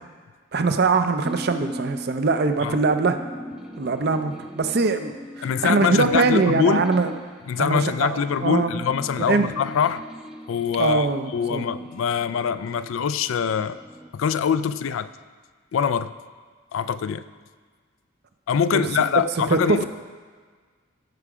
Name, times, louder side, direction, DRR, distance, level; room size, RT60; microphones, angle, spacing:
voice 1, 0.5-3.2 3.8-7.1 7.6-8.7 9.2-9.5 10.8-11.6 18.7-18.8 19.5-19.8, right 4 dB, 55° right, 8 dB, 0.6 m, -22 dB
sound 1, 1.2-12.6 13.1-14.1, equal, 5° right, 0.5 m, -39 dB
voice 2, 5.4-6.9 7.5-10.0 10.5-11.1 11.3-13.8 14.1-15.1 15.7-16.1 16.7-17.2 18.5-19.8, left 7 dB, 85° left, 14 dB, 0.4 m, -23 dB
14.5 x 4.8 x 4.9 m, 1.5 s
head